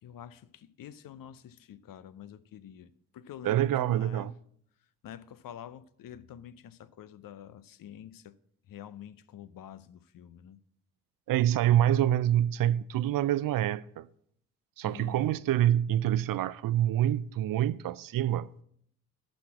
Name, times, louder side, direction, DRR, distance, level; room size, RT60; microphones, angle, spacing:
voice 1, 0.0-4.3 5.0-8.4 8.7-10.6 14.8-15.3, left 10 dB, 55° left, 0.7 m, -47 dB
voice 2, 3.4-4.3 11.3-14.1 14.8-18.5, right 12 dB, 55° right, 0.5 m, -26 dB
11.5 x 4.3 x 7.7 m
hypercardioid pair, 45°, 40 cm